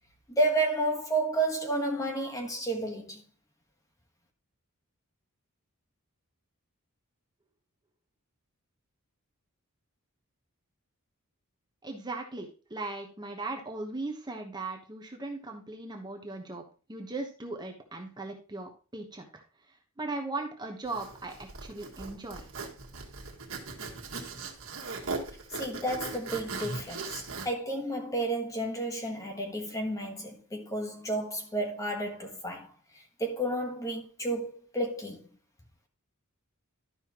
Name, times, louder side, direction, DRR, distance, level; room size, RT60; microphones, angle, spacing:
voice 1, 0.3-3.2 25.5-32.7 33.2-35.2, right 2 dB, 15° left, 1.3 m, -31 dB
voice 2, 11.8-16.6 16.9-19.4 20.0-22.4, right 2 dB, 20° right, 1.1 m, -38 dB
Zipper (clothing), 20.9-27.5, right 3 dB, 70° right, 1.7 m, -39 dB
12.0 x 5.6 x 3.0 m
head